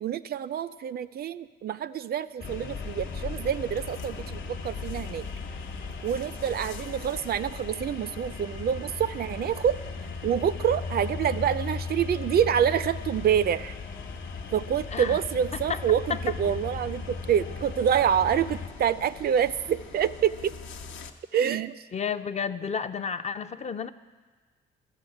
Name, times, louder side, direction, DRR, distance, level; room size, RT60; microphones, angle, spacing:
voice 1, 0.0-5.3 6.0-9.8 10.2-13.8 14.5-20.6 21.3-21.8, right 9 dB, 50° right, 14 dB, 0.4 m, -27 dB
sound 1, 2.4-21.1, left 4 dB, 70° left, 0.8 m, -42 dB
sound 2, 2.4-18.7, left 5 dB, 50° left, 1.1 m, -38 dB
voice 2, 21.9-23.9, left 6 dB, 35° left, 10 dB, 0.5 m, -31 dB
13.0 x 6.3 x 7.8 m, 1.4 s
cardioid pair, 90°, 20 cm